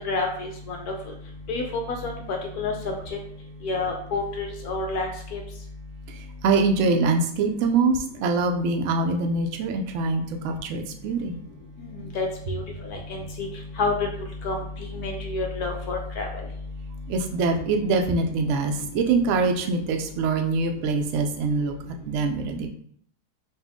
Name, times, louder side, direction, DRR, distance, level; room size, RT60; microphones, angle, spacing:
voice 1, 0.0-0.9 1.5-2.7 3.6-5.4 11.8-13.5 13.8-14.1 14.4-14.6 14.9-16.3, left 3 dB, 70° left, 2 dB, 1.1 m, -29 dB
voice 2, 6.4-11.4 17.1-21.7 22.1-22.7, right 3 dB, 70° right, 3 dB, 0.7 m, -24 dB
4.1 x 2.4 x 3.6 m, 0.63 s
omnidirectional pair, 1.8 m